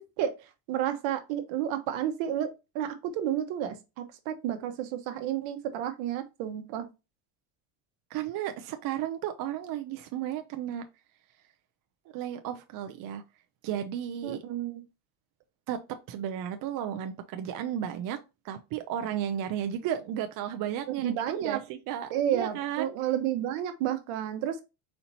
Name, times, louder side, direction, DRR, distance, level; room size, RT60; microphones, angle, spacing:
voice 1, 0.0-6.9 14.2-14.8 21.0-21.6 22.1-24.6, right 10 dB, 70° right, 1.0 m, -31 dB
voice 2, 8.1-10.8 12.1-13.2 13.6-14.4 15.7-15.8 16.1-18.2 18.4-21.1 21.4-22.9, right 10 dB, 45° right, 0.5 m, -33 dB
4.4 x 2.8 x 4.0 m
cardioid pair, 140°, 48 cm